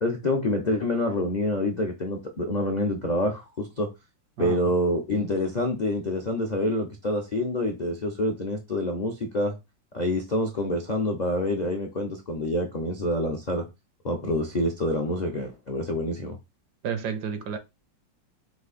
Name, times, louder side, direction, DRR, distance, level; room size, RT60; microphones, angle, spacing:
voice 1, 0.0-3.9 4.4-9.5 9.9-13.7 14.0-16.4, left 1 dB, 50° left, 0.5 m, -27 dB
voice 2, 16.8-17.6, right 7 dB, 70° right, 1.1 m, -31 dB
4.6 x 2.8 x 4.1 m
omnidirectional pair, 2.1 m